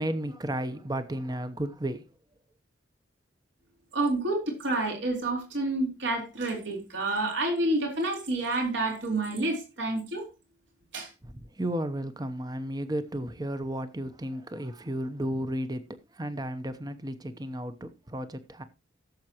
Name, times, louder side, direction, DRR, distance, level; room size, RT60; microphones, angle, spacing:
voice 1, 0.0-2.0 11.2-15.9 16.1-18.6, right 1 dB, 20° right, 0.9 m, -33 dB
voice 2, 3.9-10.3 10.9-11.1, right 2 dB, 70° right, 4.0 m, -29 dB
17.0 x 7.4 x 3.0 m
head